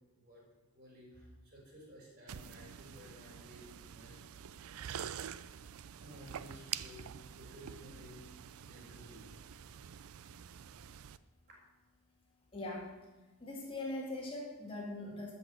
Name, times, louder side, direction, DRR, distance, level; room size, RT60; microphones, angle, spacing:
voice 1, 0.7-4.2 6.0-7.0 7.4-8.2 8.6-9.4 10.2-10.3, equal, 40° right, -3 dB, 4.4 m, -55 dB
sound 1, 2.3-11.2, right 9 dB, 70° right, 0.4 m, -47 dB
voice 2, 12.5-12.9 13.4-15.3, left 2 dB, 25° left, -3 dB, 2.2 m, -41 dB
13.0 x 5.9 x 7.0 m, 1.2 s
head